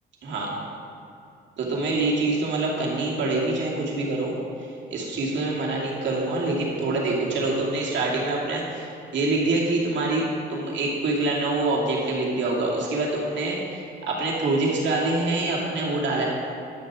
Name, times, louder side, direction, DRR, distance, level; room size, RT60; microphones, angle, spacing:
voice 1, 1.6-4.4 4.9-10.2 10.5-16.2, right 2 dB, 65° right, -4 dB, 2.5 m, -25 dB
11.5 x 6.8 x 4.8 m, 2.7 s
cardioid pair, 90°, 20 cm